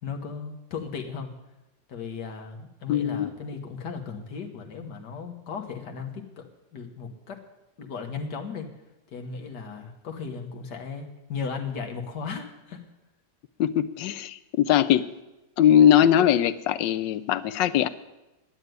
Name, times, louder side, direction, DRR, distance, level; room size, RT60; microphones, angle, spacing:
voice 1, 0.0-1.3 1.9-7.4 7.8-8.7 9.1-12.8, left 5 dB, 70° left, 4 dB, 1.9 m, -36 dB
voice 2, 2.9-3.3 13.6-15.1 15.6-17.9, left 10 dB, 90° left, 14 dB, 1.3 m, -21 dB
9.8 x 9.0 x 9.4 m, 0.99 s
omnidirectional pair, 1.9 m